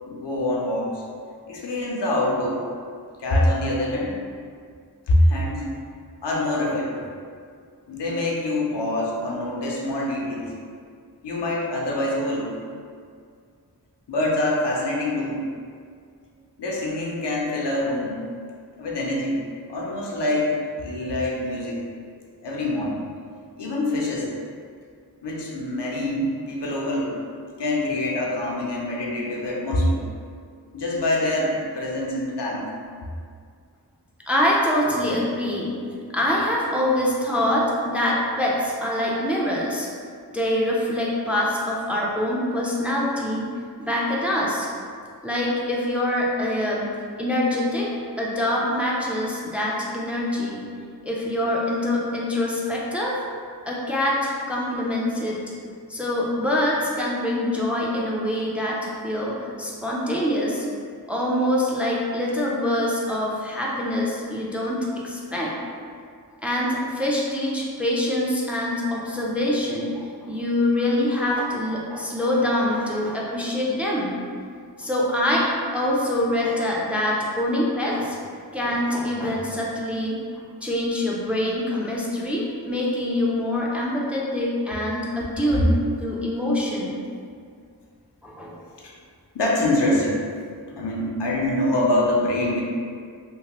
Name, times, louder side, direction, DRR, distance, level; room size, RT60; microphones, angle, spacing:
voice 1, 0.0-1.0 1.5-2.6 3.2-4.2 5.1-5.7 6.2-7.1 7.9-10.5 11.2-12.6 14.1-15.4 16.6-18.2 18.8-19.4 19.7-21.8 22.4-23.0 23.6-24.3 25.2-27.2 27.6-30.0 30.7-32.7 88.8-88.9 89.3-90.3 90.7-92.6, left 1 dB, 80° left, -3 dB, 0.6 m, -25 dB
voice 2, 34.3-35.8 36.1-39.9 40.3-43.5 43.8-44.7 45.2-46.9 47.2-47.9 48.2-50.6 51.0-53.2 53.6-55.4 55.9-60.7 61.1-65.5 66.4-74.2 74.8-78.2 78.5-87.0 88.2-88.6, left 1 dB, 5° right, -4 dB, 0.4 m, -25 dB
2.9 x 2.1 x 2.9 m, 2.2 s
wide cardioid pair, 45°, 41 cm